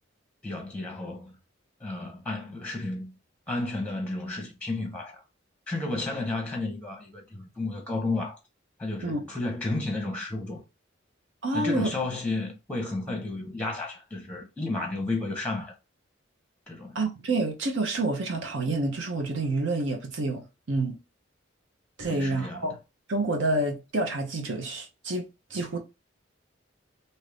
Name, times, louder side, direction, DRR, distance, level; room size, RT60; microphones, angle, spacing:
voice 1, 0.4-1.3 1.8-3.1 3.5-5.2 5.7-8.4 8.8-10.6 11.5-15.7 16.7-17.0 22.0-22.6, left 2 dB, 5° left, 0.8 m, -32 dB
voice 2, 11.4-11.9 16.9-21.0 22.0-22.8 23.1-25.2 25.5-25.8, right 2 dB, 70° right, 0.8 m, -28 dB
2.8 x 2.6 x 3.3 m
head